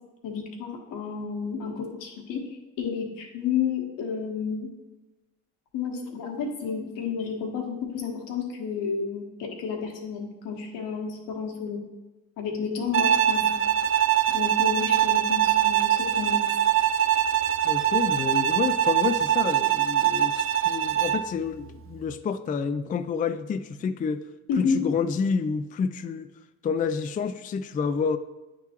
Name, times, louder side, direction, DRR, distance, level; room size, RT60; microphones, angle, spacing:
voice 1, 0.2-2.4 2.8-4.7 5.7-11.8 12.4-13.6 14.3-16.5 24.5-24.8, left 6 dB, 80° left, 1 dB, 1.3 m, -31 dB
Bowed string instrument, 12.9-21.3, right 11 dB, 40° right, 0.5 m, -23 dB
voice 2, 17.6-24.2 24.6-26.3 26.6-28.2, left 6 dB, 25° left, 11 dB, 0.3 m, -29 dB
9.0 x 3.7 x 2.9 m, 1.1 s
supercardioid pair, 60°, 32 cm